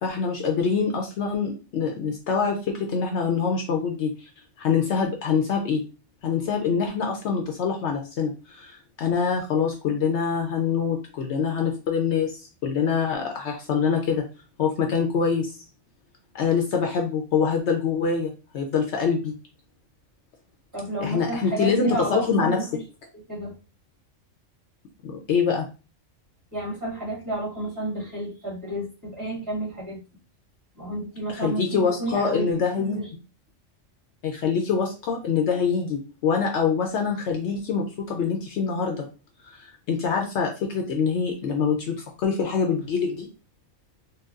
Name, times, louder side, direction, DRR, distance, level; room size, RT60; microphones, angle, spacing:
voice 1, 0.0-4.3 4.6-5.8 6.2-14.2 14.6-15.5 16.3-19.3 21.0-22.7 25.0-25.7 31.3-33.0 34.2-39.0 39.5-43.3, left 6 dB, 70° left, 2 dB, 0.8 m, -25 dB
voice 2, 20.7-22.8 23.1-23.5 26.5-30.0 30.7-32.5 32.8-33.1, right 1 dB, 15° right, -7 dB, 1.6 m, -31 dB
3.9 x 2.2 x 2.4 m, 0.32 s
omnidirectional pair, 1.3 m